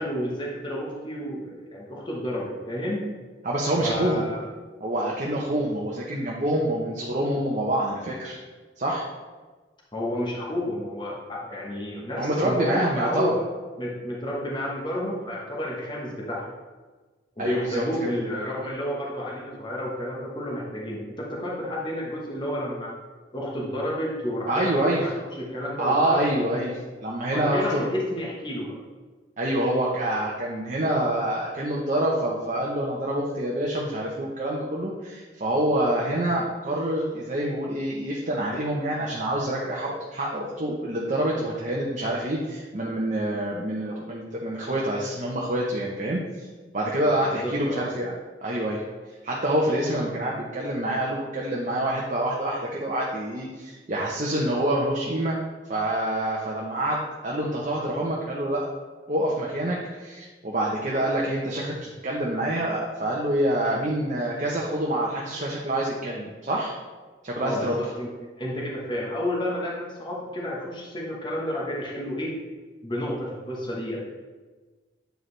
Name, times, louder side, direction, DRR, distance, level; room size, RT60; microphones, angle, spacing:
voice 1, 0.0-3.1 3.8-4.4 9.9-13.4 13.8-16.4 17.4-22.9 23.3-26.2 27.3-28.7 47.2-47.9 67.4-68.1 68.4-72.3 72.8-74.0, left 1 dB, 25° left, -4 dB, 1.1 m, -31 dB
voice 2, 3.4-4.3 4.8-8.4 8.8-9.0 12.2-13.3 17.4-18.1 24.5-25.1 25.8-27.9 29.4-46.2 46.7-48.1 48.4-48.8 49.2-55.4 55.7-58.7 59.1-66.7 67.2-67.8, right 1 dB, 40° right, -3 dB, 0.8 m, -26 dB
9.1 x 4.6 x 3.3 m, 1.3 s
head